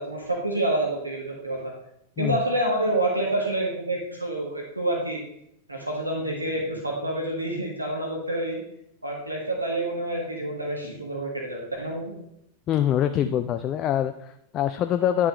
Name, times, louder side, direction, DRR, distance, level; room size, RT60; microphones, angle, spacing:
voice 1, 0.0-1.7 2.2-5.2 5.7-8.6 9.0-12.1, right 1 dB, 85° right, -1 dB, 1.4 m, -28 dB
voice 2, 12.7-15.3, left 10 dB, 35° left, 9 dB, 0.3 m, -24 dB
10.0 x 5.3 x 3.0 m, 0.76 s
figure-of-eight pair, 90°, 0 cm